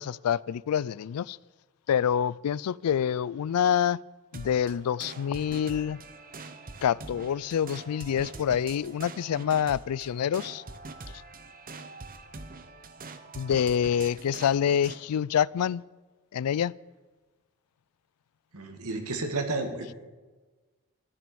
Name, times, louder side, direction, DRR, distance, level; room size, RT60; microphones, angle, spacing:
voice 1, 0.0-1.4 1.9-4.0 4.3-6.0 6.8-10.6 13.4-15.8 16.3-16.7, left 8 dB, 85° left, 0.3 m, -26 dB
sound 1, 4.3-15.0, right 3 dB, 40° right, 1.0 m, -44 dB
voice 2, 18.5-19.9, right 2 dB, 75° right, 2.1 m, -32 dB
14.0 x 10.5 x 6.9 m
head